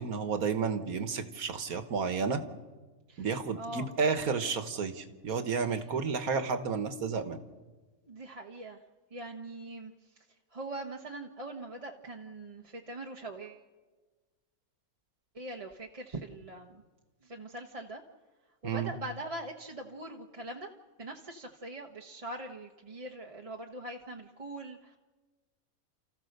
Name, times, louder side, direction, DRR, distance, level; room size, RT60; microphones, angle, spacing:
voice 1, 0.0-2.4 3.2-7.4 18.6-18.9, right 5 dB, 75° right, 10 dB, 1.7 m, -31 dB
voice 2, 3.5-3.9 8.0-8.8 9.1-10.2 10.5-13.6 15.3-16.8 17.2-18.0 18.6-20.7 21.0-25.0, right 2 dB, 25° right, 1 dB, 1.0 m, -42 dB
30.0 x 14.5 x 6.6 m, 1.3 s
omnidirectional pair, 1.5 m